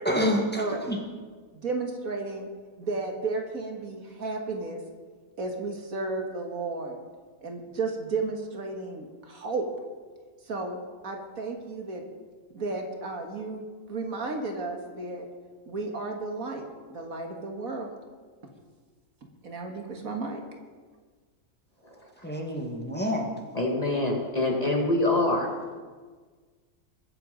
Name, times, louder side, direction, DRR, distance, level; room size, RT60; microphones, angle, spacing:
voice 1, 0.0-1.0 22.2-23.3, equal, 5° left, 0 dB, 1.8 m, -28 dB
voice 2, 0.6-0.9 1.5-2.5 2.8-4.8 5.4-7.0 7.4-9.7 10.5-10.8 11.0-12.0 12.5-15.3 15.7-17.9 19.4-20.4, right 3 dB, 65° right, 3 dB, 2.0 m, -33 dB
voice 3, 23.5-25.5, left 2 dB, 25° left, 0 dB, 1.9 m, -25 dB
22.0 x 7.7 x 5.2 m, 1.5 s
omnidirectional pair, 1.6 m